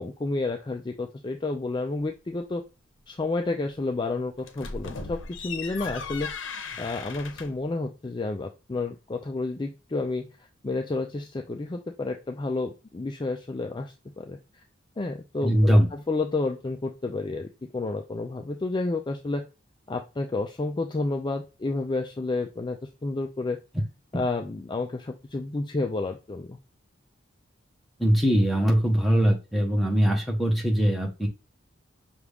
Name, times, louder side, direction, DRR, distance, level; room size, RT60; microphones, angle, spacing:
voice 1, 0.0-2.6 3.1-6.3 6.8-10.3 10.6-14.4 15.0-19.4 19.9-23.6 24.1-26.6, left 3 dB, 25° left, 3 dB, 0.3 m, -30 dB
sound 1, 4.4-7.7, left 4 dB, 75° left, 0.7 m, -37 dB
voice 2, 15.4-15.9 28.0-31.3, equal, ahead, 0 dB, 0.9 m, -21 dB
5.9 x 2.4 x 3.4 m, 0.29 s
head